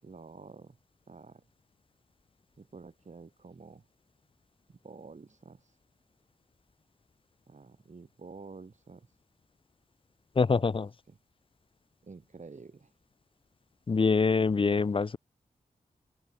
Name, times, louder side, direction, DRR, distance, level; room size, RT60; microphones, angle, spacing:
voice 1, 0.0-0.8 1.1-1.4 2.6-3.8 4.7-5.8 7.5-9.2 11.1-11.2 12.0-12.9, right 4 dB, 55° right, 7.3 m, -49 dB
voice 2, 10.4-10.9 13.9-15.2, left 4 dB, 35° left, 0.6 m, -25 dB
open air
cardioid pair, 70°, 15 cm